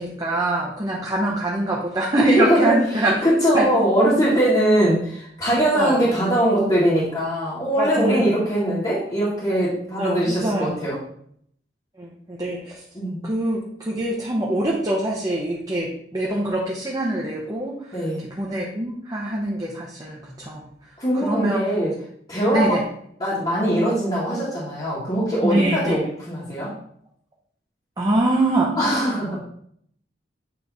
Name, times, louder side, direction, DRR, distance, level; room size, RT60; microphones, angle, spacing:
voice 1, 0.0-3.1 3.5-3.7 5.7-6.1 7.8-8.3 10.0-10.7 12.0-12.7 13.2-17.8 18.4-20.7 21.2-21.6 22.5-22.8 25.4-26.0 28.0-28.7, right 1 dB, 20° right, -3 dB, 0.9 m, -24 dB
voice 2, 2.4-11.0 12.9-13.3 17.9-18.2 21.0-21.9 22.3-22.8 23.2-26.7 28.8-29.4, right 1 dB, 30° left, -10 dB, 1.8 m, -21 dB
8.6 x 3.2 x 4.1 m, 0.67 s
head